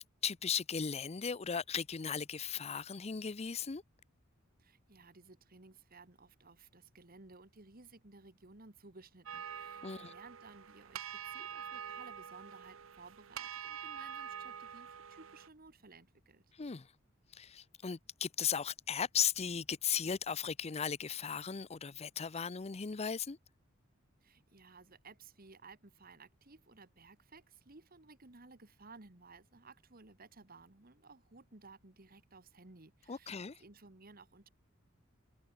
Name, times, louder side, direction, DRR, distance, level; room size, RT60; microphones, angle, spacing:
voice 1, 0.0-3.8 9.8-10.1 16.6-16.9 17.3-23.4 33.1-33.6, left 7 dB, 30° left, 0.6 m, -37 dB
voice 2, 4.6-16.5 24.2-34.5, right 3 dB, 45° right, 1.9 m, -57 dB
sound 1, 9.3-15.5, right 8 dB, 75° right, 0.7 m, -46 dB
head